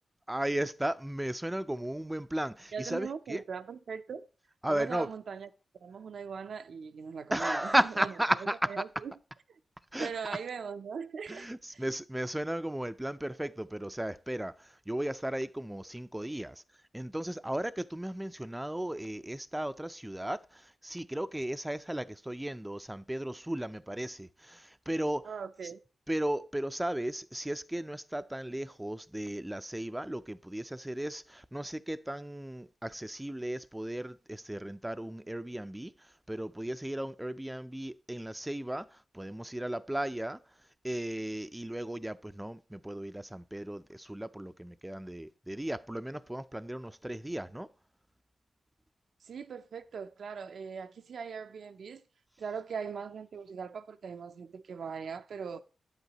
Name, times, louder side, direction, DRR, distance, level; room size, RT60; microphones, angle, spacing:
voice 1, 0.3-3.4 4.6-5.1 7.3-8.8 9.9-10.1 11.3-16.6 16.9-25.3 25.6-25.7 26.1-40.4 40.8-47.7, right 1 dB, 10° right, 0.3 m, -35 dB
voice 2, 2.7-4.3 4.7-5.5 5.7-8.1 8.7-9.1 9.5-9.6 10.0-11.8 25.2-25.8 49.2-52.0 52.4-55.6, right 6 dB, 75° right, 0.4 m, -40 dB
8.9 x 8.0 x 2.9 m
cardioid pair, 85°, 0 cm